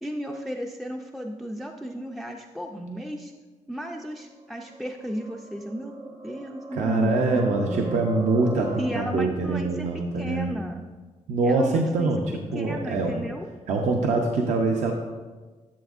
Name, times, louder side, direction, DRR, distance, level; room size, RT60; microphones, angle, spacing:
voice 1, 0.0-3.3 3.7-8.1 8.8-10.8 11.4-12.3 12.5-13.5, equal, ahead, 2 dB, 0.3 m, -34 dB
sound 1, 3.8-8.9, right 2 dB, 25° right, 0.7 m, -40 dB
voice 2, 6.7-10.5 11.3-12.2 12.5-13.3 13.7-14.9, right 3 dB, 70° right, 2 dB, 0.7 m, -24 dB
11.5 x 7.1 x 2.5 m, 1.3 s
wide cardioid pair, 160°, 13 cm